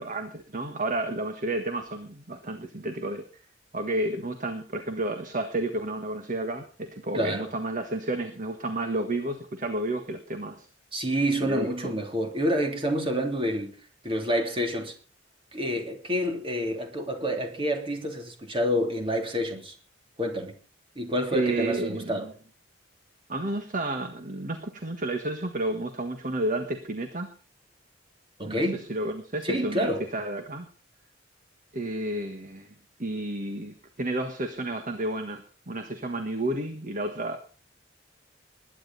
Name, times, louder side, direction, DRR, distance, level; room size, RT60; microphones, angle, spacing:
voice 1, 0.0-3.2 3.7-10.6 11.4-11.7 21.3-22.3 23.3-27.3 28.4-30.7 31.7-32.7 33.0-37.4, right 1 dB, 45° right, 1.6 m, -31 dB
voice 2, 7.1-7.5 10.9-13.7 14.0-14.9 15.5-19.7 20.2-20.5 20.9-22.3 28.4-28.8 29.4-30.1, equal, 30° right, 3.1 m, -28 dB
21.0 x 10.0 x 4.1 m
head